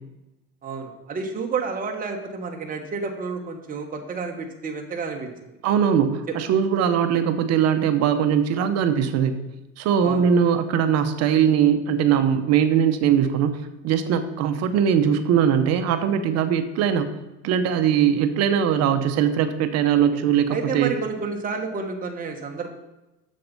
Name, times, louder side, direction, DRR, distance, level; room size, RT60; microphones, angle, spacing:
voice 1, 0.6-5.3 6.3-6.4 10.0-10.3 19.9-20.0 20.5-22.7, right 5 dB, 25° right, 2 dB, 1.5 m, -30 dB
voice 2, 5.6-9.4 9.8-13.6 13.8-17.1 17.4-20.9, right 8 dB, 55° right, 9 dB, 0.9 m, -21 dB
7.6 x 7.4 x 5.4 m, 0.99 s
cardioid pair, 140°, 31 cm